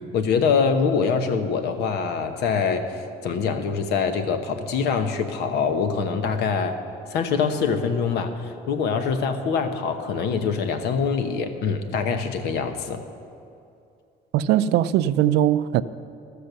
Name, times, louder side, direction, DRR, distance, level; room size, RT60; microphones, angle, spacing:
voice 1, 0.1-6.8 7.1-13.0, left 5 dB, 80° left, 8 dB, 1.0 m, -24 dB
voice 2, 14.3-15.8, right 12 dB, 80° right, 15 dB, 0.4 m, -20 dB
13.5 x 6.6 x 6.7 m, 2.6 s
cardioid pair, 110°, 17 cm